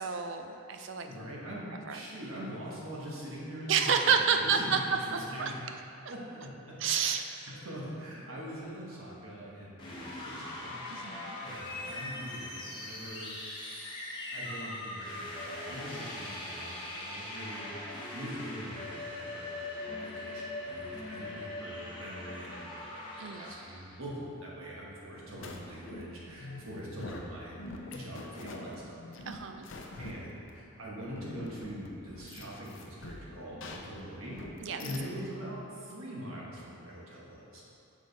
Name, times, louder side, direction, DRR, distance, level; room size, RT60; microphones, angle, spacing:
voice 1, 0.0-1.1 1.9-2.0 3.7-4.8 5.4-5.5 6.8-7.2 10.9-11.4 23.2-23.4 29.3-29.7 34.6-34.8, right 6 dB, 55° right, 6 dB, 0.4 m, -29 dB
voice 2, 1.0-5.6 6.1-10.7 11.4-13.3 14.3-27.6 27.9-29.0 30.0-34.4 34.8-37.6, equal, 70° right, -5 dB, 1.4 m, -43 dB
sound 1, 9.8-23.9, left 2 dB, 20° left, 0.9 m, -41 dB
sound 2, 25.1-35.3, left 2 dB, 60° left, 0.6 m, -46 dB
6.2 x 5.0 x 4.1 m, 2.7 s
head